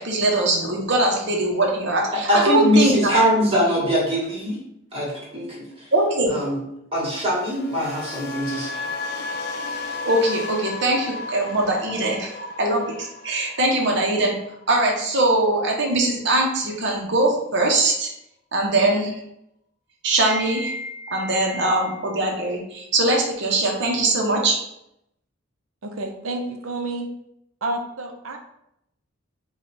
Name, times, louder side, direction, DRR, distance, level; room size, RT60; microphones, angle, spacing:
voice 1, 0.0-3.1 5.9-6.3 10.0-12.3 12.6-14.4 14.7-18.1 18.5-19.2 20.0-24.6, right 2 dB, 55° right, 0 dB, 0.9 m, -21 dB
voice 2, 2.3-4.6 4.9-5.7 6.3-6.6 6.9-8.7, equal, 25° right, -5 dB, 1.7 m, -22 dB
sound 1, 7.3-15.4 15.7-16.1, left 3 dB, 50° left, 0.4 m, -34 dB
voice 3, 25.8-27.1 27.6-28.4, right 2 dB, 80° right, 5 dB, 0.6 m, -29 dB
4.8 x 2.4 x 4.2 m, 0.79 s
head